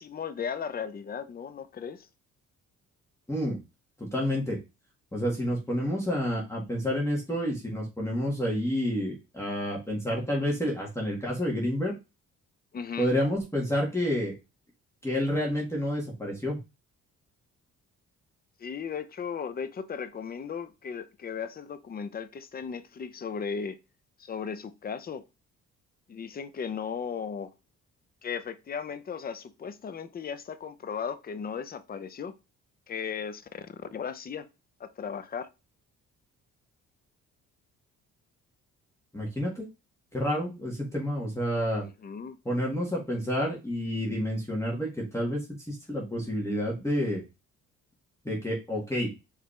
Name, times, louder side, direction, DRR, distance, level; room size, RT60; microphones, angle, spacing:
voice 1, 0.0-2.1 12.7-13.1 18.6-23.8 24.2-25.2 26.1-27.5 28.2-32.3 32.9-34.5 34.8-35.5 41.8-42.4, left 6 dB, 30° left, 0.6 m, -36 dB
voice 2, 3.3-3.6 4.0-4.6 5.1-11.9 13.0-14.3 15.0-16.6 39.1-39.7 40.1-41.8 42.4-47.2 48.2-49.1, equal, 10° left, 1.7 m, -29 dB
4.9 x 3.3 x 3.2 m
cardioid pair, 90°, 30 cm